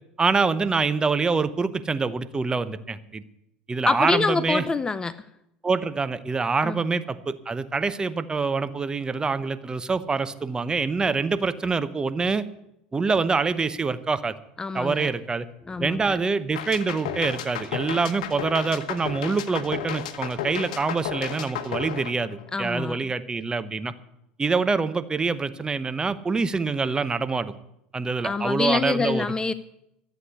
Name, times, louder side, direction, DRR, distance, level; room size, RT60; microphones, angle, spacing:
voice 1, 0.2-3.2 3.7-4.6 5.6-12.4 12.9-14.3 14.7-15.5 15.8-23.9 24.4-27.5 27.9-29.2, right 4 dB, 20° right, 13 dB, 0.8 m, -25 dB
voice 2, 3.9-5.2 6.6-6.8 14.6-15.1 15.7-16.2 22.5-23.0 28.2-29.5, left 4 dB, 20° left, 15 dB, 0.5 m, -26 dB
sound 1, 16.6-22.8, left 9 dB, 75° left, 1.1 m, -33 dB
13.0 x 8.1 x 8.1 m, 0.82 s
hypercardioid pair, 85°, 4 cm